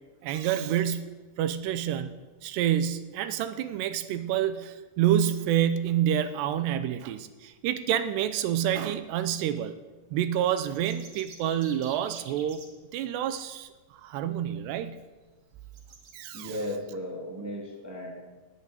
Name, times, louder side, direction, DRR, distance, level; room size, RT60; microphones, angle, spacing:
voice 1, 0.2-9.8 10.1-12.6 12.9-13.7 14.0-15.0 16.1-16.5, right 10 dB, 80° right, 12 dB, 2.6 m, -28 dB
sound 1, 10.7-12.7 14.4-14.5 14.9-15.0 15.7-16.3, right 4 dB, 55° right, 1.6 m, -48 dB
voice 2, 16.3-18.1, equal, 5° right, -2 dB, 1.5 m, -35 dB
19.0 x 8.5 x 8.1 m, 1.2 s
omnidirectional pair, 5.4 m